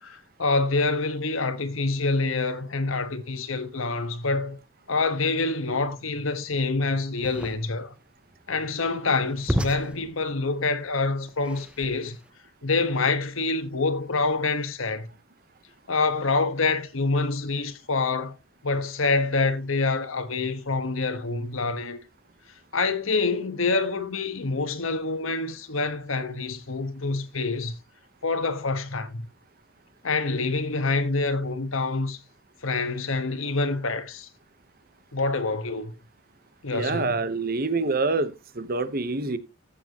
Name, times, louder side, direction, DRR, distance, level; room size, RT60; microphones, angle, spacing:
voice 1, 0.0-4.6 4.9-7.9 8.5-12.2 12.6-15.1 15.9-18.4 18.6-22.0 22.7-27.8 28.2-29.3 30.0-32.2 32.6-34.3 35.1-35.9 36.6-37.2, left 3 dB, 80° left, 1.4 m, -26 dB
sound 1, 7.2-12.3, equal, 5° right, 0.7 m, -34 dB
voice 2, 36.7-39.4, right 3 dB, 45° right, 1.1 m, -26 dB
14.5 x 6.8 x 3.0 m
head